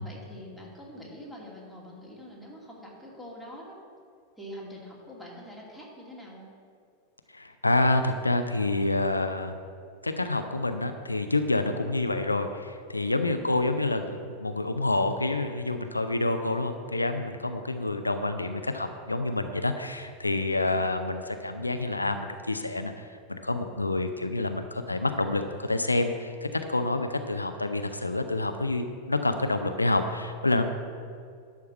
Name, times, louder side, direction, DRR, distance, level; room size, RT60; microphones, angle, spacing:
voice 1, 0.0-3.8 4.4-6.5 13.3-13.6, equal, 5° right, -4 dB, 2.6 m, -45 dB
voice 2, 7.3-9.6 10.0-30.7, left 2 dB, 80° left, 7 dB, 0.5 m, -28 dB
11.5 x 4.7 x 7.1 m, 2.2 s
figure-of-eight pair, 90°, 0 cm